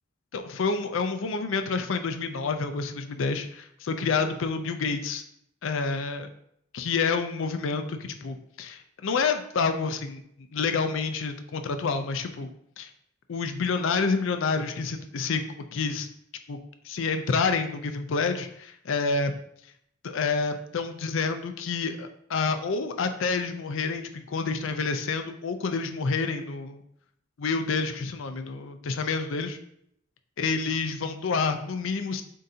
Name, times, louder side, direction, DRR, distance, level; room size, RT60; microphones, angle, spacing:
voice 1, 0.3-5.2 5.6-6.3 6.7-10.2 10.5-12.9 13.3-15.4 15.7-16.1 16.5-16.6 16.8-19.3 20.0-26.8 27.4-29.6 30.4-32.2, left 4 dB, 65° left, 8 dB, 0.5 m, -28 dB
7.4 x 2.6 x 2.7 m, 0.71 s
head